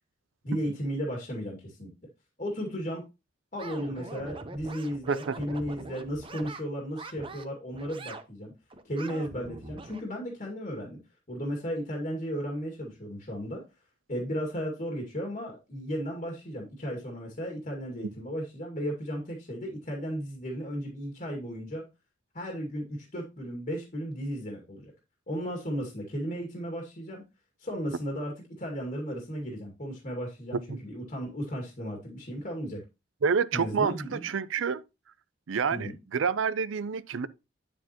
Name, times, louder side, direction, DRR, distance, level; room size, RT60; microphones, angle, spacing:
voice 1, 0.4-1.9 2.4-3.0 3.5-8.5 8.8-11.0 11.3-13.6 14.1-21.8 22.3-24.9 25.3-27.2 27.6-32.8 33.5-34.3 35.7-36.0, equal, 40° left, 2.1 m, -35 dB
sound 1, 3.6-6.6 6.9-7.4 7.7-8.3 8.7-10.0, right 3 dB, 25° right, 0.8 m, -43 dB
voice 2, 33.2-34.8 35.5-37.3, right 6 dB, 80° right, 0.5 m, -28 dB
9.3 x 7.2 x 2.9 m
head